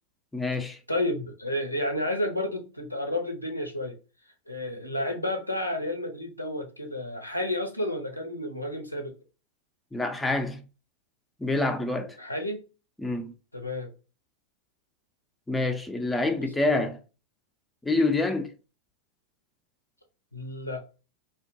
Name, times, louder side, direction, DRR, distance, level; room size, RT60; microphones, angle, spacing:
voice 1, 0.3-0.8 9.9-10.6 11.4-12.2 13.0-13.3 15.5-17.0 17.8-18.5, left 2 dB, 5° left, 0.4 m, -27 dB
voice 2, 0.9-4.0 4.5-9.1 11.9-12.6 13.5-13.9 20.3-20.8, left 1 dB, 85° left, 0.5 m, -31 dB
2.7 x 2.1 x 2.6 m
figure-of-eight pair, 90°, 0 cm